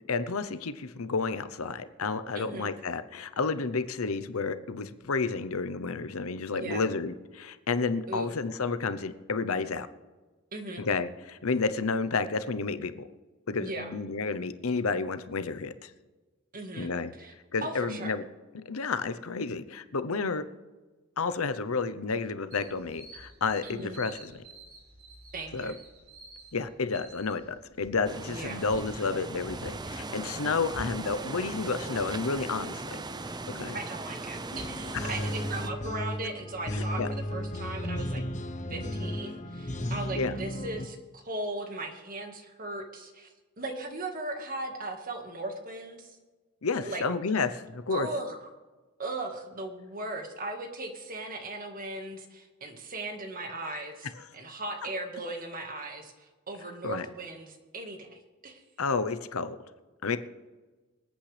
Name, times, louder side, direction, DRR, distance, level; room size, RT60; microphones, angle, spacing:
voice 1, 0.0-9.9 10.8-13.1 13.5-15.9 16.8-17.1 17.5-18.2 18.5-20.5 21.2-24.3 25.5-25.7 26.5-33.0 33.5-33.8 34.9-35.3 36.7-37.1 40.2-40.4 46.6-48.1 56.8-57.1 58.8-59.6 60.0-60.2, left 4 dB, 80° left, 12 dB, 0.8 m, -31 dB
voice 2, 2.3-2.7 6.5-6.8 8.1-8.3 10.5-10.8 13.6-13.9 16.5-17.3 17.6-18.1 23.6-24.0 25.3-25.8 28.3-28.6 33.7-38.2 38.7-43.3 43.6-46.2 46.8-47.0 47.9-48.5 49.0-58.6, right 2 dB, 40° right, 4 dB, 1.8 m, -38 dB
sound 1, 22.5-27.9, right 3 dB, 80° right, 4.1 m, -51 dB
sound 2, 28.0-35.7, right 2 dB, 20° right, 0.6 m, -38 dB
sound 3, 34.5-40.9, left 1 dB, 35° left, 0.9 m, -34 dB
26.0 x 8.8 x 3.4 m, 1.3 s
head